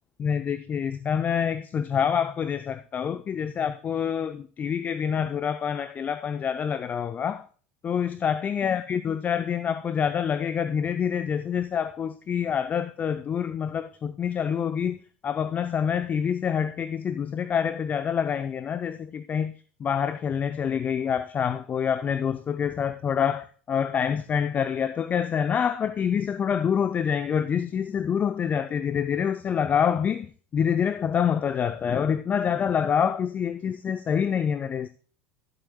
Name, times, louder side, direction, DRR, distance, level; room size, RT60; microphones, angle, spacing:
voice 1, 0.2-7.5 7.8-15.0 15.2-19.5 19.8-34.9, left 7 dB, 30° left, 0.5 m, -26 dB
14.5 x 7.9 x 2.3 m
figure-of-eight pair, 75°, 6 cm